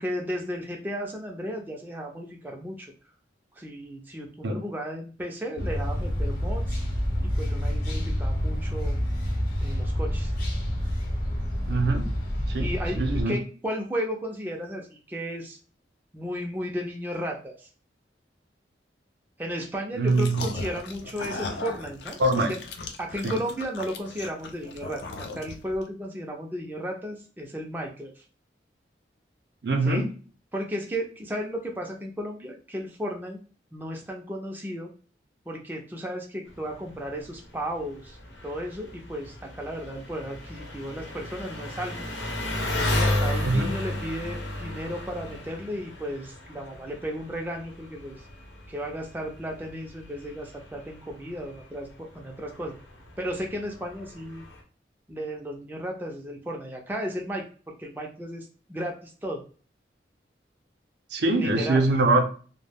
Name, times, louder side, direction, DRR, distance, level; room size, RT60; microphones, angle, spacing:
voice 1, 0.0-2.9 3.5-6.8 7.2-9.0 9.6-10.3 12.6-15.6 16.1-17.7 19.4-22.5 23.0-25.0 25.3-28.2 29.8-30.0 30.5-33.4 33.7-34.9 35.5-38.2 38.4-42.0 42.8-48.2 48.7-52.8 53.2-54.4 55.1-59.4 61.4-61.9, equal, 10° right, 0 dB, 0.3 m, -34 dB
sound 1, 5.6-13.2, equal, 55° left, 0.8 m, -28 dB
voice 2, 11.7-12.1 12.5-13.4 20.0-20.5 22.2-22.5 23.2-23.4 29.6-30.1 43.4-43.7 61.1-62.2, right 2 dB, 65° right, 4 dB, 0.5 m, -23 dB
sound 2, 20.1-25.8, left 3 dB, 70° left, 0.4 m, -37 dB
Engine, 36.5-54.6, left 1 dB, 85° left, 0.7 m, -34 dB
2.2 x 2.0 x 3.3 m, 0.39 s
head